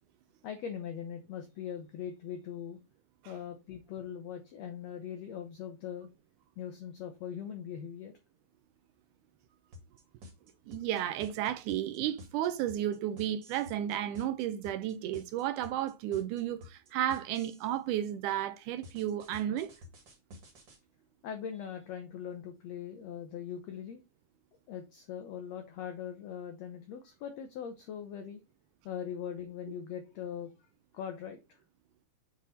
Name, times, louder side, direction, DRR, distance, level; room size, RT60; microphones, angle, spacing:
voice 1, 0.4-2.8 3.2-6.1 6.6-8.1 21.2-24.0 24.7-28.4 28.8-30.5 30.9-31.4, left 8 dB, 75° left, 1.6 m, -41 dB
sound 1, 9.7-17.7 18.8-20.8, left 2 dB, 40° right, 2.0 m, -51 dB
voice 2, 10.7-19.7, right 11 dB, 80° right, 2.0 m, -33 dB
7.5 x 3.5 x 4.2 m
omnidirectional pair, 3.8 m